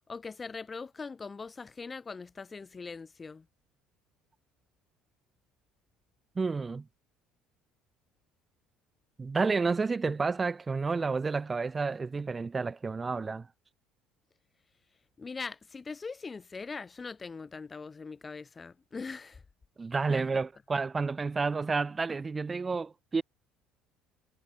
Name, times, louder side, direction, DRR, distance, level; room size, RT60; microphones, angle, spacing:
voice 1, 0.1-3.5 15.2-19.4 20.1-20.3, left 4 dB, 20° left, 4.4 m, -41 dB
voice 2, 6.4-6.8 9.2-13.5 19.8-23.2, right 4 dB, 20° right, 2.8 m, -30 dB
cardioid pair, 130°, 0 cm